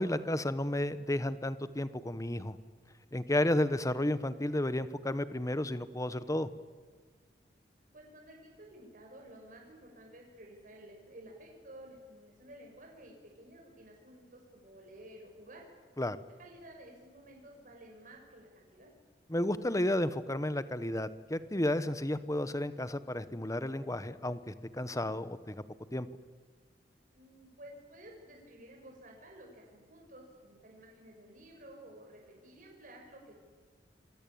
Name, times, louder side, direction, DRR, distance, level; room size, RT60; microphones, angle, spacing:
voice 1, 0.0-2.6 3.1-6.5 16.0-16.2 19.3-25.6 25.9-26.1, left 1 dB, 20° left, 13 dB, 1.2 m, -32 dB
voice 2, 7.9-15.6 16.4-18.9 27.1-33.3, right 1 dB, 50° right, 0 dB, 6.3 m, -53 dB
27.5 x 23.5 x 8.7 m, 1.5 s
head